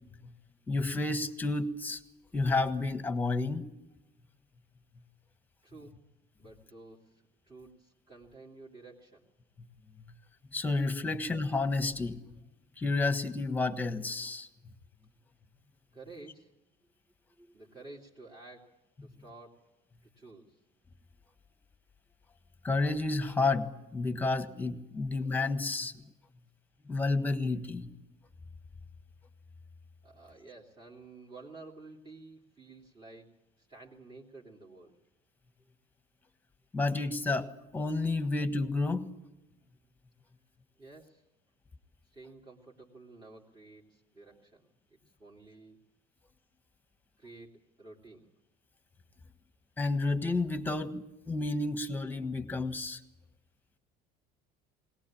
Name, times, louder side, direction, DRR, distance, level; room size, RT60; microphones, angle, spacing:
voice 1, 0.7-2.0 2.3-3.6 10.5-12.2 12.8-14.5 22.6-25.9 26.9-27.9 36.7-37.5 37.7-39.1 49.8-53.0, left 3 dB, 10° left, 9 dB, 1.5 m, -30 dB
voice 2, 5.6-6.0 6.4-9.2 15.9-16.5 17.5-18.7 19.0-19.6 20.2-20.6 25.0-25.1 30.0-35.0 40.8-41.2 42.1-45.8 47.2-48.3, right 3 dB, 25° right, -3 dB, 2.8 m, -52 dB
21.0 x 19.0 x 8.7 m, 0.94 s
cardioid pair, 130°, 19 cm